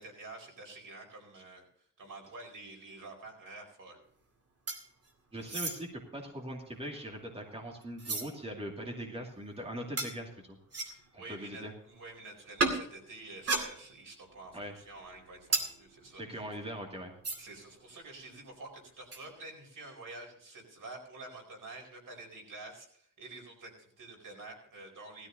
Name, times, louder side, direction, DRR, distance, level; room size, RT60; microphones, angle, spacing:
voice 1, 0.0-1.6 2.0-4.0 10.8-16.2 17.4-25.3, right 2 dB, 85° right, 1 dB, 4.8 m, -48 dB
sound 1, 4.7-5.1 5.4-5.8 6.5-8.3 8.8-8.9 10.0-10.1 10.7-11.1 12.6-12.8 13.3-14.2 14.5-17.6 17.9-18.0 18.2-18.5 19.1-19.3, right 3 dB, 50° right, 2.3 m, -36 dB
voice 2, 5.3-10.6 11.1-11.7 14.5-14.8 16.2-17.1, equal, 20° right, 0 dB, 2.3 m, -41 dB
18.5 x 13.5 x 2.7 m, 0.62 s
wide cardioid pair, 180°, 32 cm